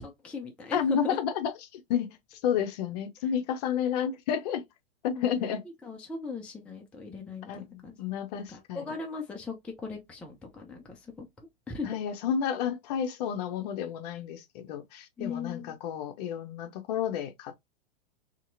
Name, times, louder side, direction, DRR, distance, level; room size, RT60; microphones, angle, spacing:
voice 1, 0.0-1.2 5.2-5.4 5.8-8.0 8.5-11.3 11.7-12.0 15.2-15.8, left 4 dB, 5° left, 0.4 m, -38 dB
voice 2, 0.7-4.6 5.0-5.6 7.5-8.9 11.8-17.6, left 8 dB, 45° left, 0.7 m, -31 dB
2.8 x 2.8 x 2.6 m
figure-of-eight pair, 110°, 30 cm